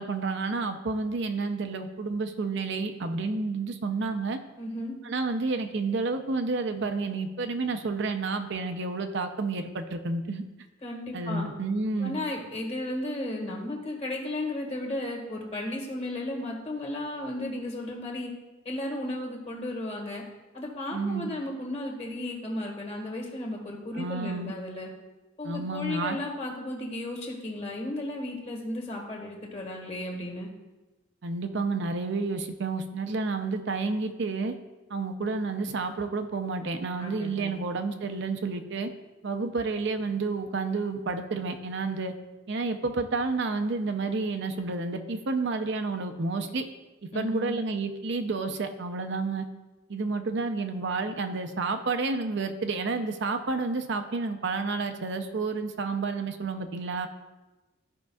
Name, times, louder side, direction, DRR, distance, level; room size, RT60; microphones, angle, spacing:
voice 1, 0.0-4.4 5.0-10.4 11.1-12.2 20.9-21.3 23.9-24.5 25.4-26.2 31.2-34.5 34.9-38.9 39.2-42.1 42.5-46.7 47.1-49.5 49.9-57.1, right 3 dB, 60° right, 6 dB, 0.6 m, -30 dB
voice 2, 4.6-4.9 10.8-11.5 12.0-18.3 18.6-20.2 20.5-24.9 25.4-30.5 37.0-37.6 47.1-47.5, left 1 dB, 35° left, 0 dB, 1.6 m, -34 dB
14.0 x 5.3 x 2.3 m, 1.1 s
head